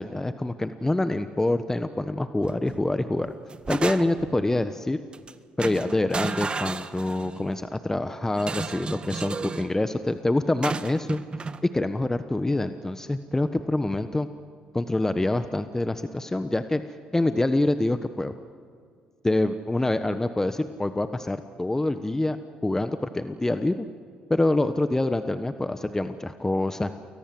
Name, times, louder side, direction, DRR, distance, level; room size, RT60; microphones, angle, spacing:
voice 1, 0.0-3.3 3.7-5.0 5.6-11.2 11.6-14.3 14.7-18.3 19.2-22.4 22.6-23.9 24.3-26.9, left 2 dB, 15° left, 10 dB, 1.2 m, -26 dB
sound 1, 2.4-2.8 3.2-4.4 5.1-5.3 5.6-7.4 8.4-9.7 10.6-11.6, right 4 dB, 30° right, 1.6 m, -33 dB
29.5 x 22.5 x 7.8 m, 2.2 s
supercardioid pair, 70°, 3 cm